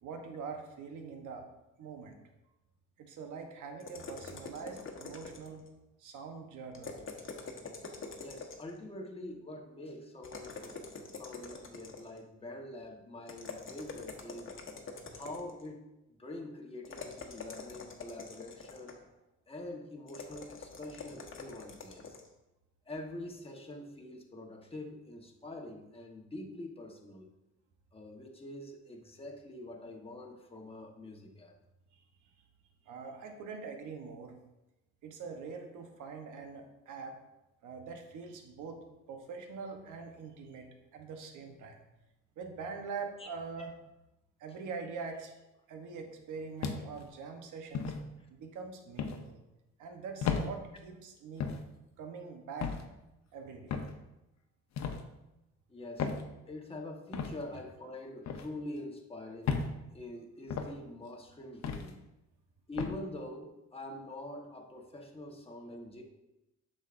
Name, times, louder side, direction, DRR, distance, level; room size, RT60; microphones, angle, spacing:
voice 1, 0.0-1.5 1.8-2.2 3.0-5.7 6.0-7.0 31.9-32.0 32.8-34.4 35.0-37.2 37.6-41.8 42.4-43.7 44.4-45.3 45.7-47.9 48.3-49.4 49.8-51.5 52.0-52.7 53.3-53.7, right 5 dB, 80° right, 4 dB, 1.0 m, -44 dB
sound 1, 3.8-5.7 6.7-8.8 10.2-12.2 13.3-15.6 16.8-19.1 20.1-22.3, left 4 dB, 40° left, 1.2 m, -45 dB
voice 2, 8.2-10.7 11.2-14.6 15.1-19.0 19.5-22.2 22.9-27.3 27.9-31.5 43.2-43.3 55.7-56.1 56.5-59.7 59.9-62.0 62.7-66.0, left 1 dB, 20° left, 1 dB, 1.2 m, -45 dB
sound 2, 46.6-47.1 47.7-48.0 49.0-49.2 50.2-50.5 51.4-51.6 52.6-52.9 53.7-54.0 54.8-55.0 56.0-56.2 57.1-57.3 58.3-58.5 59.5-59.7 60.5-60.7 61.6-61.9 62.8-63.0, left 6 dB, 60° left, 0.9 m, -34 dB
7.9 x 6.4 x 2.6 m, 0.95 s
cardioid pair, 90°, 30 cm